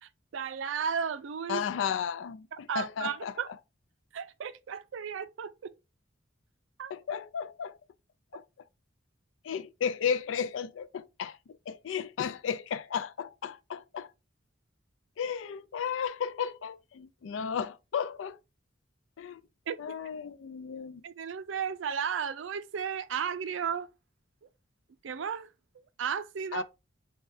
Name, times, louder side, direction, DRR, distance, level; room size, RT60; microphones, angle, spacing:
voice 1, 0.0-1.6 2.5-3.5 4.1-5.7 6.8-6.9 19.7-19.8 21.0-23.9 25.0-25.5 26.0-26.6, right 7 dB, 75° right, 0.4 m, -34 dB
voice 2, 1.5-3.3 6.9-7.8 8.3-8.4 9.4-14.1 15.2-18.4 19.2-19.4 19.8-21.0 26.5-26.6, left 7 dB, 90° left, 0.4 m, -34 dB
6.4 x 2.3 x 2.6 m
head